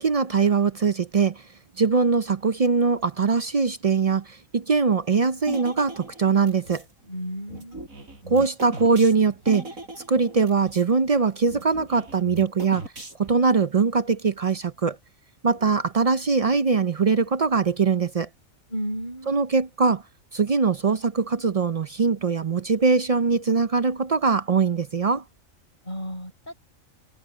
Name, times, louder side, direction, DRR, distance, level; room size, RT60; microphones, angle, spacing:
voice 1, 0.0-1.4 1.8-6.8 8.3-9.7 10.1-12.8 13.2-15.0 15.4-18.3 19.3-20.0 20.3-25.2, right 5 dB, 60° right, 0.3 m, -22 dB
sound 1, 5.5-6.9 7.5-10.9 11.2-11.3 11.5-13.5, right 2 dB, 85° right, 5.9 m, -39 dB
voice 2, 7.0-7.9 18.7-19.4 25.8-26.5, equal, 35° left, 6.4 m, -33 dB
omnidirectional pair, 1.4 m